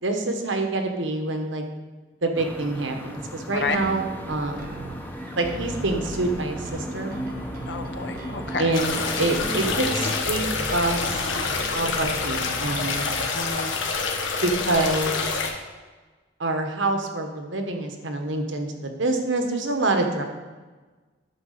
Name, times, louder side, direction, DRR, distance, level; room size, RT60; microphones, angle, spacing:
voice 1, 0.0-1.6 2.2-4.7 5.3-7.2 8.6-10.4 10.7-11.2 11.7-13.1 14.4-15.3 16.4-20.2, right 2 dB, 75° right, 4 dB, 1.2 m, -26 dB
sound 1, 2.4-10.2, equal, 10° left, 0.7 m, -36 dB
sound 2, 3.7-13.3, right 1 dB, 50° right, 1.0 m, -38 dB
voice 2, 7.7-8.7 13.3-13.7, left 4 dB, 60° left, 6 dB, 0.9 m, -30 dB
sound 3, 8.7-15.5, left 4 dB, 80° left, 1.3 m, -27 dB
10.5 x 4.6 x 6.6 m, 1.3 s
head